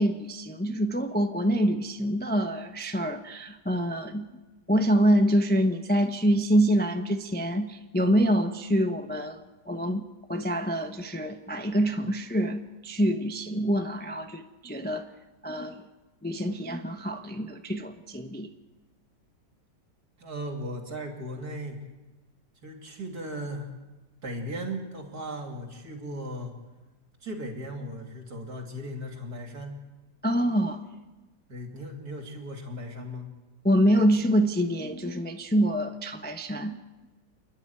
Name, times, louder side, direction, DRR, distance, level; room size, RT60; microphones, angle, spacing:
voice 1, 0.0-4.3 4.7-9.4 9.7-15.1 15.4-15.8 16.2-18.5 30.2-30.8 33.6-36.8, equal, 10° left, 5 dB, 0.7 m, -26 dB
voice 2, 20.2-21.8 22.6-23.7 24.2-26.5 27.2-29.8 31.5-33.3, equal, 60° right, 3 dB, 3.4 m, -37 dB
28.5 x 11.0 x 9.5 m, 1.2 s
omnidirectional pair, 1.9 m